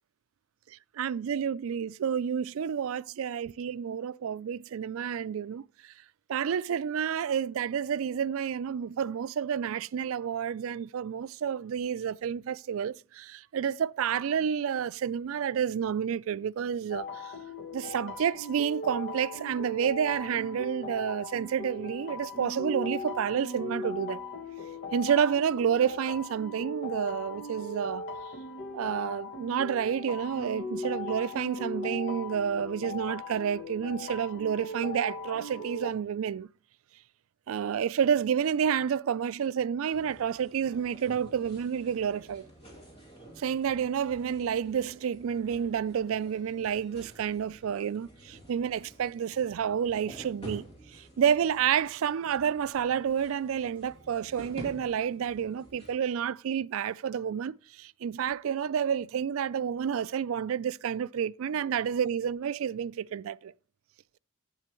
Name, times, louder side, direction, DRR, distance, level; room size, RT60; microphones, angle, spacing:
voice 1, 0.7-5.9 6.3-17.3 17.7-24.2 24.9-28.0 28.7-36.5 37.5-42.5 43.4-50.6 50.9-63.5, right 8 dB, 70° right, 0.3 m, -30 dB
sound 1, 16.9-35.9, left 2 dB, 55° left, 1.1 m, -39 dB
sound 2, 39.9-55.9, right 1 dB, 30° left, 2.8 m, -50 dB
11.5 x 8.3 x 3.0 m
head